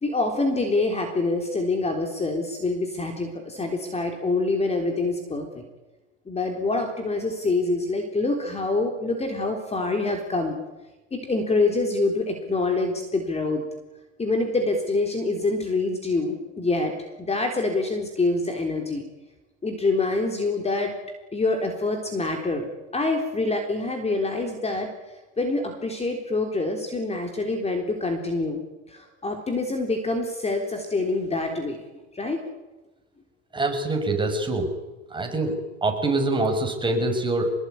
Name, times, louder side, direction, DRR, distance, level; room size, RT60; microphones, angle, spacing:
voice 1, 0.0-5.6 6.3-10.6 11.1-13.6 14.2-19.0 19.6-20.9 21.3-28.6 28.9-31.8 32.1-32.4, left 3 dB, 15° left, 4 dB, 3.8 m, -26 dB
voice 2, 33.5-34.7 35.1-37.5, right 2 dB, 10° right, 3 dB, 6.7 m, -25 dB
25.5 x 21.0 x 9.7 m, 1.1 s
supercardioid pair, 120°, 37 cm